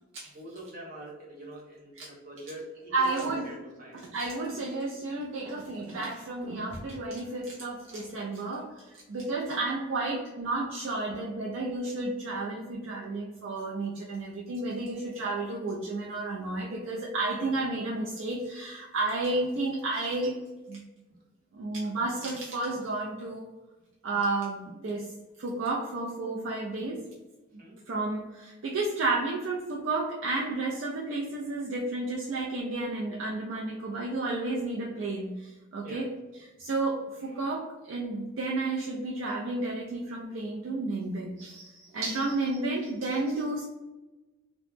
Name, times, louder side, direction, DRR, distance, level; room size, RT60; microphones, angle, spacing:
voice 1, 0.3-4.0 6.7-6.8 9.5-9.6 21.1-21.2 27.6-27.8 35.8-36.0, right 1 dB, 40° right, -3 dB, 0.9 m, -44 dB
voice 2, 2.9-3.5 3.9-20.3 20.7-20.8 21.5-23.4 24.0-25.1 25.4-27.0 27.9-36.1 36.6-43.6, right 2 dB, 60° right, -2 dB, 0.4 m, -32 dB
2.9 x 2.0 x 3.2 m, 1.1 s
head